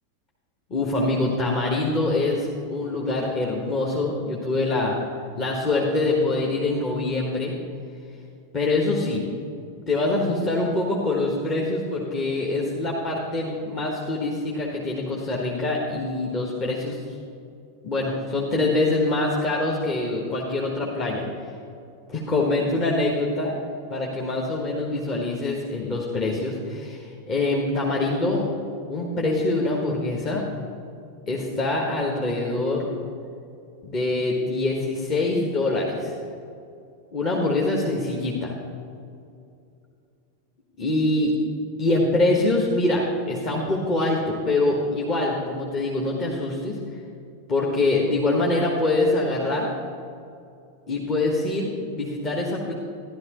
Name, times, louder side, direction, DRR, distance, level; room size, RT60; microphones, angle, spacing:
voice 1, 0.7-5.0 5.4-7.5 8.5-9.2 9.9-17.0 17.8-21.3 22.1-23.5 23.9-28.5 28.9-30.4 31.3-32.9 33.8-36.1 37.1-38.5 40.8-41.3 41.8-46.8 47.5-49.7 50.9-51.7 51.9-52.7, left 2 dB, 30° left, -3 dB, 1.3 m, -24 dB
13.0 x 11.5 x 3.0 m, 2.5 s
figure-of-eight pair, 90°, 0 cm